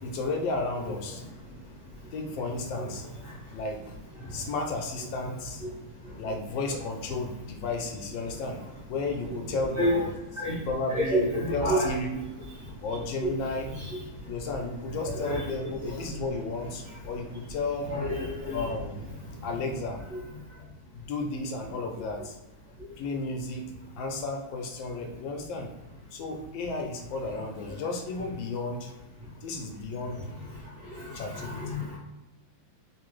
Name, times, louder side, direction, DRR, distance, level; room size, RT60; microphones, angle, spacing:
voice 1, 0.0-1.2 2.1-3.0 3.5-3.9 4.3-5.6 6.2-8.6 8.9-10.1 10.7-12.2 12.8-13.7 14.3-17.9 18.5-19.1 19.4-20.0 20.9-22.4 23.0-25.7 26.1-28.9 29.4-30.2 31.1-31.9, left 3 dB, 80° left, 2 dB, 1.4 m, -33 dB
voice 2, 10.9-11.9 13.2-13.3 15.2-15.4 17.9-18.7 30.8-32.0, equal, 45° right, -6 dB, 1.6 m, -29 dB
3.6 x 2.8 x 3.1 m, 1.0 s
omnidirectional pair, 2.1 m